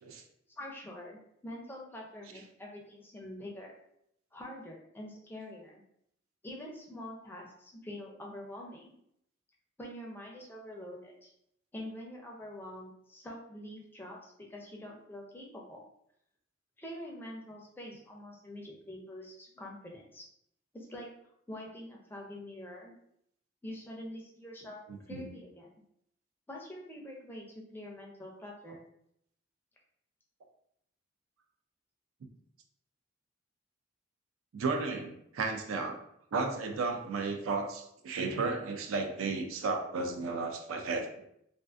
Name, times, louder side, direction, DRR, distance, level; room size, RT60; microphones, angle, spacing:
voice 1, 0.6-3.7 4.3-5.8 6.4-8.9 9.8-11.3 11.7-15.9 16.8-20.2 20.7-21.1 21.5-22.9 23.6-24.8 25.1-25.7 26.5-28.8, left 1 dB, 10° left, -1 dB, 0.4 m, -45 dB
voice 2, 24.9-25.2 34.5-36.0 36.3-41.1, right 4 dB, 85° right, 4 dB, 0.4 m, -33 dB
2.4 x 2.4 x 2.3 m, 0.74 s
head